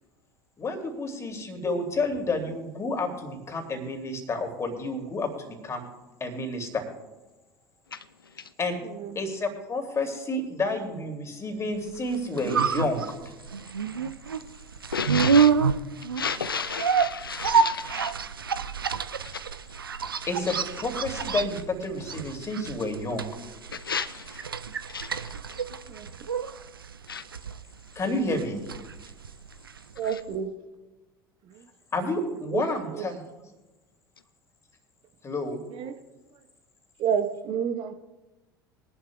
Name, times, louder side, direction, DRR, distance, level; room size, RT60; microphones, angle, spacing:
voice 1, 0.6-5.8 6.2-6.8 8.6-8.8 9.1-13.0 15.3-15.4 20.3-23.3 27.9-28.7 31.9-33.2 35.2-35.6, left 2 dB, 25° left, 2.7 m, -30 dB
voice 2, 8.8-9.2 25.9-26.1 30.0-30.5 31.4-31.7 32.5-32.6 32.9-33.1 35.7-35.9 36.3-36.4 37.0-37.9, right 8 dB, 45° right, 1.1 m, -30 dB
sound 1, 12.0-30.0 30.3-30.4, right 6 dB, 85° right, 0.4 m, -28 dB
voice 3, 14.9-15.5 16.2-18.1 23.9-24.1 24.9-25.1 27.1-27.2, left 6 dB, 85° left, 0.4 m, -31 dB
23.0 x 11.0 x 2.3 m
figure-of-eight pair, 70°, 12 cm